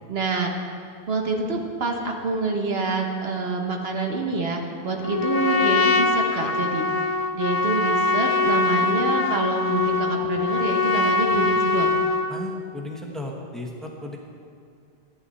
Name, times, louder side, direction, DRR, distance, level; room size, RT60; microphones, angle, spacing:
voice 1, 0.1-0.5 1.1-6.9 7.3-11.9, right 3 dB, 70° right, 2 dB, 1.3 m, -26 dB
Trumpet, 5.0-12.4, left 3 dB, 45° left, 0.6 m, -22 dB
voice 2, 12.3-14.2, left 1 dB, ahead, -1 dB, 1.3 m, -35 dB
14.5 x 10.0 x 4.2 m, 2.4 s
omnidirectional pair, 1.1 m